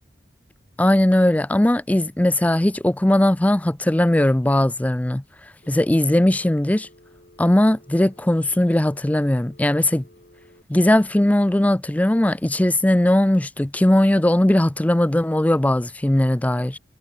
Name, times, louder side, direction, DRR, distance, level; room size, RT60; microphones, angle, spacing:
voice 1, 0.8-5.2 5.7-6.9 7.4-10.0 10.7-16.8, left 1 dB, 10° left, 0.4 m, -19 dB
Telephone, 5.6-10.6, left 1 dB, 50° left, 6.7 m, -53 dB
head